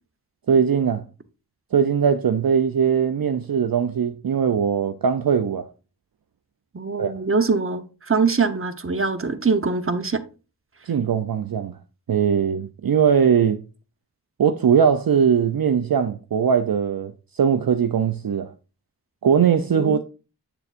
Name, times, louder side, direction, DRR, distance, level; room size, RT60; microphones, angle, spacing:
voice 1, 0.5-1.0 1.7-5.7 7.0-7.2 10.9-11.8 12.1-13.6 14.4-18.5 19.2-20.0, right 7 dB, 60° right, 0.5 m, -20 dB
voice 2, 6.7-10.2 19.7-20.0, right 4 dB, 35° right, 0.9 m, -23 dB
7.8 x 6.9 x 2.5 m
wide cardioid pair, 50°, 40 cm